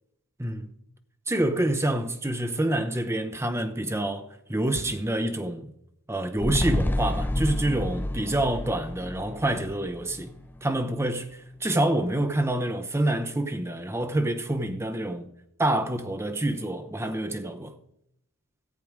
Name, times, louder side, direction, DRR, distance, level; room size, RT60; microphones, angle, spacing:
voice 1, 0.4-0.7 1.3-5.7 6.1-10.3 10.6-11.3 11.6-15.3 15.6-17.8, right 1 dB, 10° right, 0.7 m, -27 dB
sound 1, 6.4-10.9 11.2-11.3, left 1 dB, 10° left, 0.3 m, -30 dB
14.5 x 7.7 x 4.9 m
head